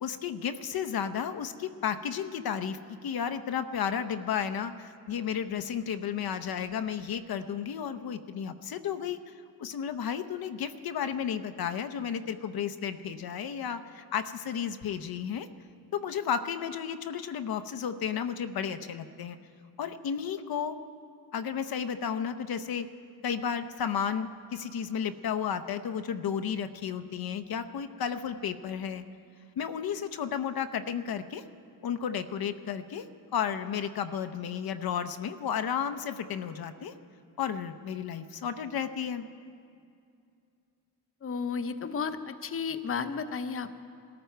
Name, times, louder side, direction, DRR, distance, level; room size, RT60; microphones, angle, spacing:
voice 1, 0.0-9.3 9.6-15.5 15.9-19.4 19.8-20.8 21.3-22.9 23.2-29.0 29.6-31.4 31.8-33.1 33.3-36.9 37.4-39.3, left 8 dB, 65° left, 10 dB, 0.8 m, -33 dB
voice 2, 41.2-43.8, left 5 dB, 35° left, 10 dB, 0.8 m, -33 dB
20.5 x 14.0 x 4.6 m, 2.4 s
cardioid pair, 85°, 38 cm